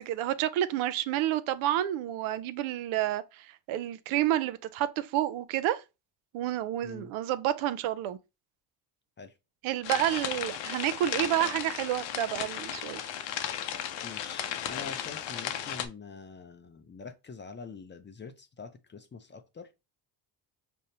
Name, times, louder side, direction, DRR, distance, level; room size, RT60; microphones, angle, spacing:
voice 1, 0.0-5.8 6.3-8.2 9.6-13.0, right 13 dB, 75° right, 0.5 m, -29 dB
sound 1, 9.8-15.9, left 10 dB, 65° left, 0.7 m, -35 dB
voice 2, 14.0-19.7, left 5 dB, 25° left, 0.5 m, -45 dB
5.1 x 2.0 x 2.8 m
supercardioid pair, 70°, 50 cm